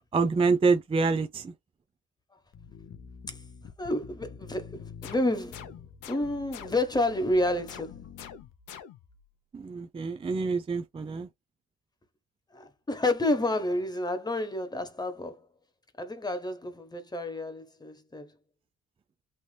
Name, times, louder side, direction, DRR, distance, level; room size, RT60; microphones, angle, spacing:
voice 1, 0.1-1.5 9.5-11.3, right 4 dB, 20° right, 0.5 m, -26 dB
sound 1, 2.5-8.5, left 7 dB, 45° left, 0.6 m, -48 dB
voice 2, 3.8-5.8 6.1-8.1 12.5-15.4 16.0-18.3, left 1 dB, 15° left, 1.0 m, -30 dB
Space Gun Shoot, 5.0-7.1 7.7-9.2, left 8 dB, 80° left, 0.8 m, -47 dB
3.4 x 2.8 x 2.2 m
cardioid pair, 90°, 30 cm